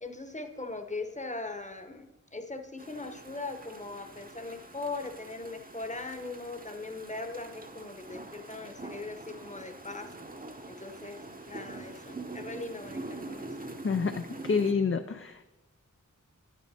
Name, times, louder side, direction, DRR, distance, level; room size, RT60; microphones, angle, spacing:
voice 1, 0.0-10.1 10.7-13.5, left 3 dB, 25° left, 6 dB, 1.0 m, -40 dB
sound 1, 2.8-14.7, right 2 dB, 25° right, 0.8 m, -44 dB
voice 2, 13.8-15.5, left 5 dB, 40° left, 7 dB, 0.5 m, -28 dB
9.8 x 9.1 x 4.2 m, 0.98 s
wide cardioid pair, 45°, 31 cm